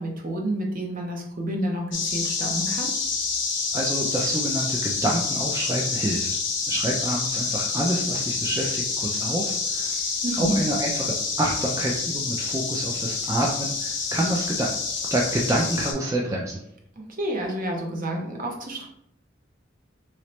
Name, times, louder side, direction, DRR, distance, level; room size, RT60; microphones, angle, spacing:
voice 1, 0.0-2.9 10.2-10.6 17.2-18.9, right 1 dB, 45° right, 1 dB, 0.7 m, -29 dB
sound 1, 1.9-15.9, left 5 dB, 75° left, 0.8 m, -28 dB
voice 2, 3.7-6.3 6.7-14.7 15.1-16.6, right 1 dB, 15° right, -2 dB, 0.4 m, -27 dB
3.1 x 2.9 x 3.0 m, 0.74 s
head